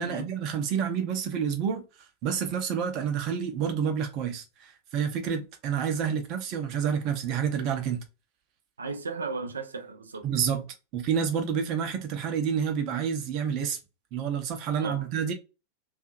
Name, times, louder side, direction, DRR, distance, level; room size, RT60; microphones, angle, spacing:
voice 1, 0.0-1.8 2.2-8.0 10.2-10.6 10.9-13.8 14.1-15.3, right 7 dB, 40° right, 0.7 m, -29 dB
voice 2, 8.8-10.3 14.8-15.1, right 4 dB, 75° right, 0.5 m, -35 dB
2.7 x 2.4 x 2.4 m
figure-of-eight pair, 90°, 0 cm